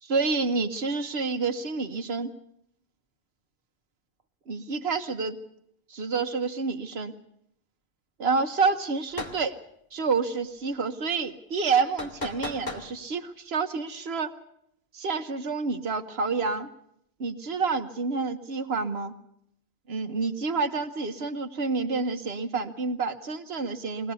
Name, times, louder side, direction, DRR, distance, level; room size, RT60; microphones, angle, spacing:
voice 1, 0.0-2.3 4.5-5.4 5.9-7.1 8.2-9.6 9.9-14.3 14.9-16.7 17.2-19.1 19.9-24.1, right 4 dB, 85° right, 7 dB, 1.3 m, -28 dB
sound 1, 9.1-9.4 12.0-12.9, left 3 dB, 45° left, 2.5 m, -35 dB
23.0 x 18.0 x 6.9 m, 0.74 s
omnidirectional pair, 1.0 m